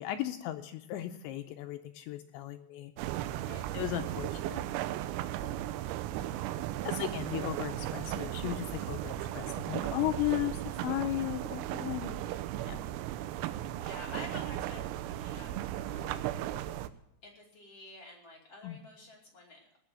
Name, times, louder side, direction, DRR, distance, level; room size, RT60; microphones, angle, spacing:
voice 1, 0.0-2.9 3.7-4.6 6.8-12.2 12.6-12.8 18.6-18.8, left 14 dB, 85° left, 6 dB, 2.6 m, -36 dB
sound 1, 3.0-16.9, right 13 dB, 85° right, 3.4 m, -36 dB
voice 2, 3.3-3.7 6.3-6.5 13.8-15.5 15.9-16.5 17.2-19.6, left 2 dB, 35° left, -2 dB, 2.9 m, -49 dB
19.0 x 6.8 x 7.7 m, 0.80 s
omnidirectional pair, 5.9 m